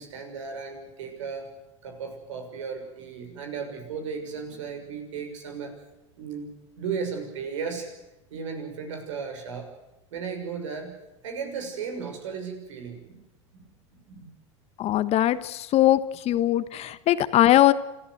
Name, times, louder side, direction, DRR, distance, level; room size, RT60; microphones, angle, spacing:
voice 1, 0.0-1.5 1.8-5.7 6.2-6.5 6.8-7.9 8.3-9.7 10.1-11.0 11.2-13.2 13.5-13.7 14.1-14.3, right 6 dB, 75° right, 4 dB, 6.5 m, -35 dB
voice 2, 14.8-16.0 16.2-17.7, left 13 dB, 40° left, 13 dB, 1.3 m, -20 dB
27.5 x 15.0 x 8.0 m, 0.98 s
hypercardioid pair, 95°, 16 cm